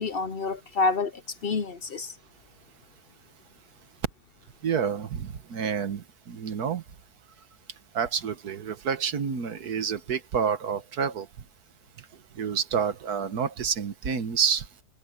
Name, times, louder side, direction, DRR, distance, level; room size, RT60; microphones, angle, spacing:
voice 1, 0.0-2.2, left 3 dB, 60° left, 0.6 m, -28 dB
voice 2, 4.6-6.8 7.9-11.3 12.3-14.7, right 7 dB, 60° right, 1.7 m, -28 dB
omnidirectional pair, 1.9 m